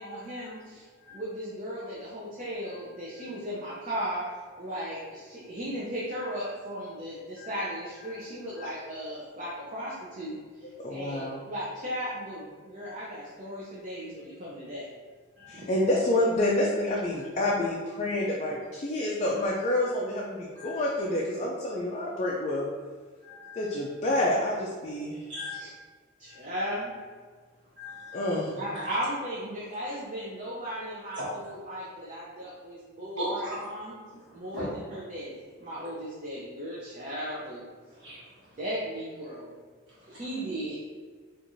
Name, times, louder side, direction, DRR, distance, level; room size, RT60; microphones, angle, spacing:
voice 1, 0.0-0.9 1.1-4.2 4.6-14.9 15.5-15.7 25.6-25.7 26.2-26.9 28.6-33.9 34.3-37.7 38.6-39.5 40.1-40.8, equal, 35° right, -7 dB, 0.6 m, -36 dB
voice 2, 10.8-11.4 15.5-22.7 23.6-25.3 28.1-28.6, left 1 dB, 35° left, -3 dB, 0.4 m, -28 dB
voice 3, 23.2-23.7 25.3-25.6 26.3-26.4 27.8-28.3 28.7-28.9 31.1-31.3 33.2-33.6 34.1-34.6 37.9-38.5 39.9-40.2, equal, 60° right, -8 dB, 1.2 m, -39 dB
4.5 x 2.5 x 2.6 m, 1.5 s
head